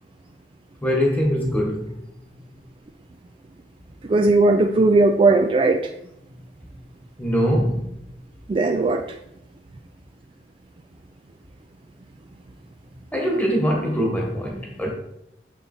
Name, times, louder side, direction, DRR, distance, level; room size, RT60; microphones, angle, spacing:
voice 1, 0.8-2.0 7.2-7.9 13.1-14.9, equal, 10° left, -1 dB, 1.4 m, -22 dB
voice 2, 4.1-5.9 8.5-9.0, right 3 dB, 30° right, 5 dB, 0.3 m, -17 dB
7.1 x 3.9 x 4.2 m, 0.81 s
head